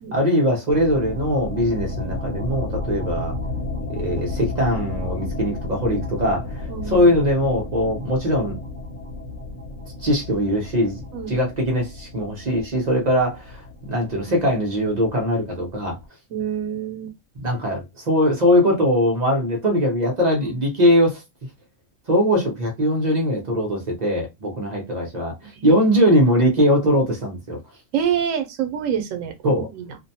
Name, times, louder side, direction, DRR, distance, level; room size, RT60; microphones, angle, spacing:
voice 1, 0.1-3.3 3.9-8.6 10.0-16.0 17.4-21.2 22.1-27.6 29.4-29.7, equal, 40° right, 0.7 m, -21 dB
sound 1, 0.7-16.1, left 2 dB, 65° left, 1.0 m, -33 dB
voice 2, 6.7-7.2 11.1-11.4 16.3-17.2 20.4-20.6 25.5-25.8 27.9-30.0, right 8 dB, 85° right, 1.0 m, -27 dB
2.5 x 2.1 x 2.7 m
omnidirectional pair, 1.3 m